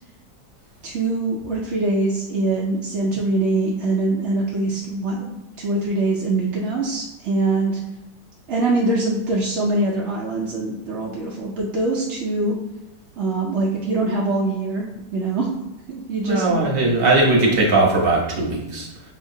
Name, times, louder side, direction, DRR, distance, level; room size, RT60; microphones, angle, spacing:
voice 1, 0.8-7.8 8.5-12.6 13.2-15.5 15.9-16.6, right 2 dB, 65° right, -4 dB, 0.7 m, -23 dB
voice 2, 16.2-18.9, right 2 dB, 40° right, -2 dB, 0.9 m, -19 dB
5.7 x 2.9 x 2.7 m, 0.97 s
omnidirectional pair, 1.9 m